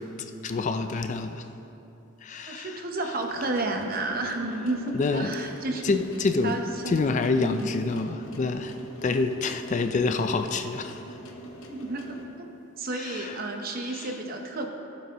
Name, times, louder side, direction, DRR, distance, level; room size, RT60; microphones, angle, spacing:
voice 1, 0.0-1.5 2.2-2.8 4.9-5.3 5.8-6.6 6.9-11.0 13.0-13.4 13.8-14.1, left 3 dB, 35° left, 7 dB, 0.4 m, -27 dB
voice 2, 2.5-5.8 6.4-7.1 7.3-7.7 11.7-12.5 12.8-14.7, right 2 dB, 45° right, 3 dB, 0.8 m, -31 dB
sound 1, 3.2-12.3, right 1 dB, 85° left, 1.0 m, -44 dB
15.5 x 7.2 x 2.9 m, 2.9 s
head